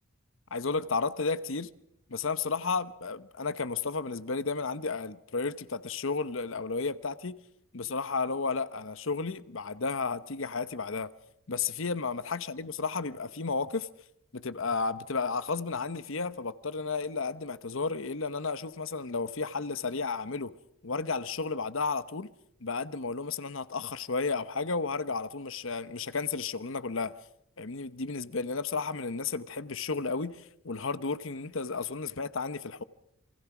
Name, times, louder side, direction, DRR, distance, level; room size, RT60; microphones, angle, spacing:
voice 1, 0.5-1.7 2.1-7.4 7.7-11.1 11.5-13.9 14.3-20.5 20.8-22.3 22.6-27.2 27.6-32.8, left 4 dB, 65° left, 1.0 m, -33 dB
28.0 x 22.5 x 6.0 m
head